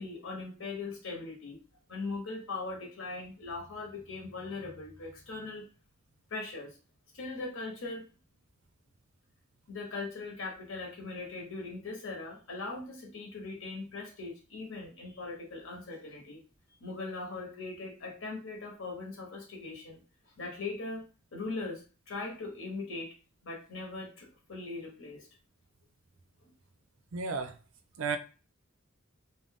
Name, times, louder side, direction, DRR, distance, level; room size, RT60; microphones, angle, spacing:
voice 1, 0.0-1.6 1.9-5.6 6.3-6.8 7.1-8.0 9.7-16.4 16.8-20.0 20.4-21.1 21.3-23.1 23.4-25.3 26.4-26.5, left 3 dB, 65° left, 0 dB, 1.0 m, -40 dB
voice 2, 27.1-27.6 28.0-28.2, right 4 dB, 75° right, 7 dB, 0.5 m, -32 dB
2.6 x 2.2 x 3.4 m, 0.35 s
head